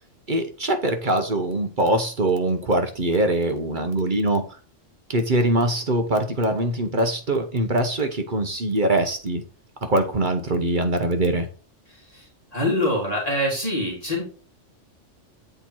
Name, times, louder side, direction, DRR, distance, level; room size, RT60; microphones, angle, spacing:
voice 1, 0.3-4.4 5.1-9.4 9.8-11.5, right 1 dB, 45° right, 1.1 m, -23 dB
voice 2, 12.5-14.2, left 1 dB, 30° left, 2.6 m, -24 dB
7.9 x 4.4 x 4.5 m
omnidirectional pair, 1.3 m